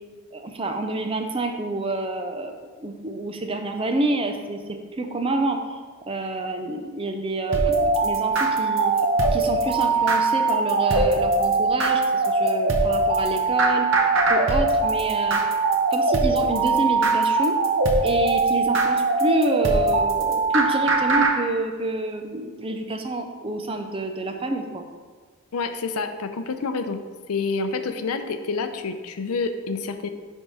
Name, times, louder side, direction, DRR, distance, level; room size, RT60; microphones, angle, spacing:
voice 1, 0.3-5.8 6.1-8.9 9.3-13.9 14.3-15.4 15.9-17.6 18.0-24.9, right 2 dB, 25° right, 5 dB, 0.5 m, -28 dB
sound 1, 7.5-21.3, right 3 dB, 55° right, 0.9 m, -21 dB
voice 2, 25.5-27.0 27.3-30.1, left 4 dB, 80° left, 8 dB, 0.5 m, -28 dB
10.5 x 3.6 x 4.1 m, 1.5 s
head